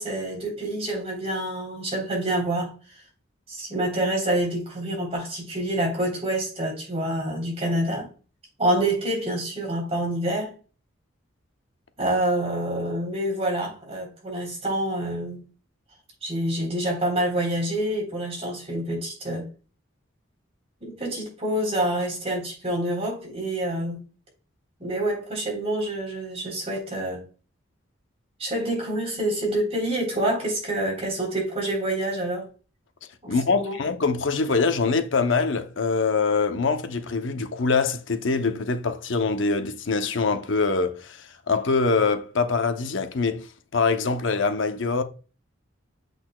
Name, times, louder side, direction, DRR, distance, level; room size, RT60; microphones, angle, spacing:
voice 1, 0.0-2.7 3.5-8.1 8.6-10.5 12.0-15.4 16.2-19.5 20.8-24.0 24.8-27.2 28.4-32.5 33.2-33.8, right 1 dB, 30° right, 3.7 m, -27 dB
voice 2, 33.3-43.5 43.7-45.0, left 4 dB, 70° left, 0.7 m, -24 dB
7.9 x 6.5 x 2.3 m
head